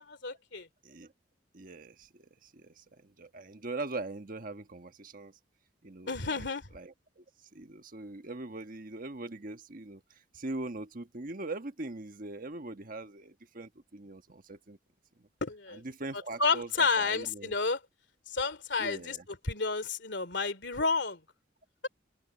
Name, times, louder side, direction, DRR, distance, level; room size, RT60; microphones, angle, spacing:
voice 1, 0.1-0.7 6.1-6.6 15.4-15.8 16.4-17.8 18.3-19.2 19.4-21.2, left 4 dB, 70° left, 2.8 m, -30 dB
voice 2, 1.5-5.4 5.8-6.5 6.7-7.2 7.5-14.8 15.2-15.3 15.7-17.5 18.8-19.2, right 2 dB, 50° right, 1.4 m, -42 dB
open air
head